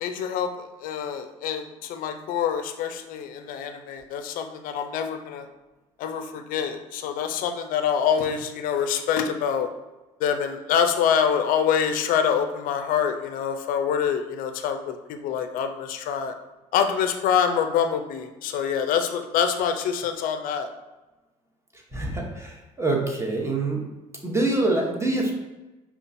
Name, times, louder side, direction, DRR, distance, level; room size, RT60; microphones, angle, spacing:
voice 1, 0.0-5.5 6.0-9.7 10.2-16.3 16.7-20.7, left 7 dB, 55° left, 7 dB, 0.4 m, -25 dB
voice 2, 21.9-23.8 24.2-25.3, right 2 dB, 15° right, -1 dB, 0.9 m, -25 dB
5.1 x 2.4 x 2.6 m, 1.1 s
hypercardioid pair, 65°, 17 cm